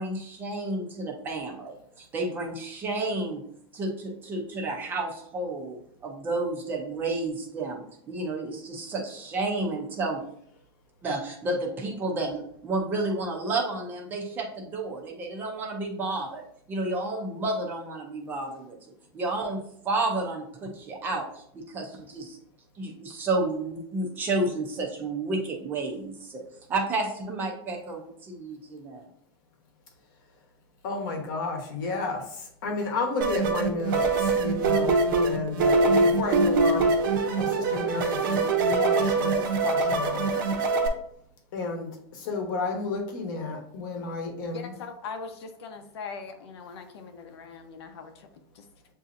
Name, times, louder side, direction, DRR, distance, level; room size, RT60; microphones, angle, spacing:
voice 1, 0.0-3.4 3.7-10.2 11.0-16.4 16.7-18.8 19.1-19.6 19.8-22.4 22.8-26.4 26.7-29.1, right 2 dB, 15° right, 0 dB, 0.5 m, -31 dB
voice 2, 30.8-36.9 37.4-40.3 41.5-44.7, left 3 dB, 50° left, 3 dB, 0.9 m, -32 dB
sound 1, 33.2-40.9, right 3 dB, 50° right, 0.7 m, -23 dB
voice 3, 44.5-48.3 48.5-48.6, left 5 dB, 80° left, 6 dB, 0.7 m, -40 dB
7.3 x 2.7 x 2.5 m, 0.67 s
supercardioid pair, 180°, 14 cm